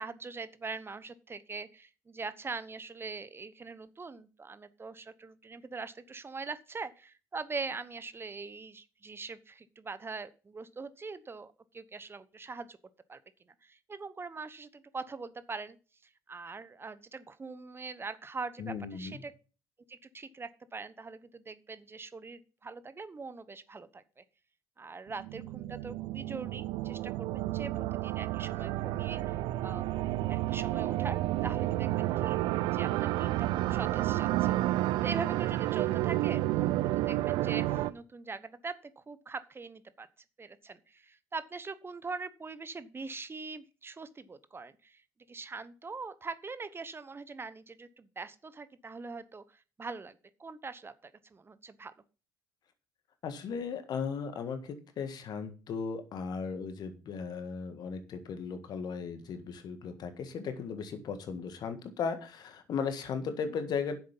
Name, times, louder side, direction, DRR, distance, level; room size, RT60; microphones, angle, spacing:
voice 1, 0.0-12.8 13.1-13.2 13.6-15.8 16.3-19.3 19.9-24.2 24.8-29.9 30.3-34.6 35.0-40.1 40.4-45.0 45.3-51.9, right 4 dB, 30° right, 14 dB, 1.0 m, -42 dB
voice 2, 18.6-19.2 53.2-64.0, left 5 dB, 55° left, 9 dB, 1.7 m, -36 dB
sound 1, 25.1-37.9, right 15 dB, 65° right, 0.6 m, -31 dB
10.5 x 7.6 x 5.5 m, 0.35 s
hypercardioid pair, 50°, 8 cm